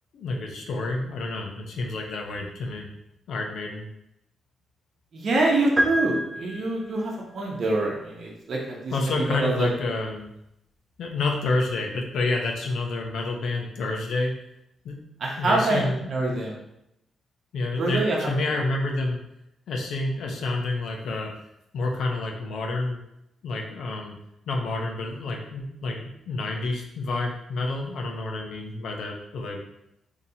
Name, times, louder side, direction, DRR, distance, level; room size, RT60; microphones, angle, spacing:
voice 1, 0.1-2.9 3.3-3.9 8.9-10.3 11.0-14.3 14.8-15.0 15.4-16.4 17.5-19.2 19.7-21.3 21.7-23.0 23.4-24.2 24.5-29.6, left 2 dB, 80° left, 1 dB, 0.7 m, -29 dB
voice 2, 5.1-9.7 15.2-16.6 17.8-18.3, right 2 dB, 55° right, -3 dB, 0.8 m, -25 dB
sound 1, 5.8-7.1, equal, 20° right, 0.5 m, -27 dB
4.0 x 2.9 x 2.8 m, 0.81 s
cardioid pair, 95°, 0 cm